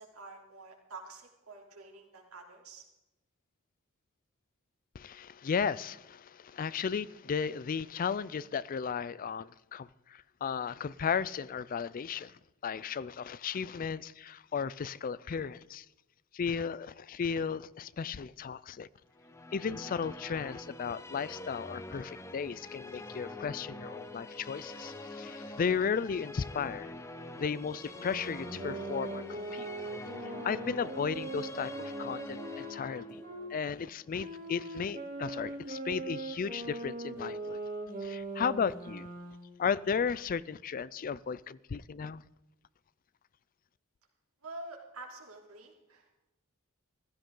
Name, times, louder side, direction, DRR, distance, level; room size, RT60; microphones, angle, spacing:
voice 1, 0.0-2.8 44.4-46.2, right 2 dB, 85° right, 3.2 m, -48 dB
voice 2, 4.9-15.9 16.3-18.9 19.5-26.9 27.3-29.9 30.2-33.2 33.5-37.6 38.0-39.1 39.6-42.2, left 6 dB, 40° left, 0.4 m, -35 dB
Musical instrument, 19.1-34.6, left 2 dB, 15° left, 0.8 m, -45 dB
sound 1, 27.8-33.5 34.2-39.5, right 2 dB, 40° right, 2.5 m, -41 dB
15.5 x 14.5 x 3.8 m
head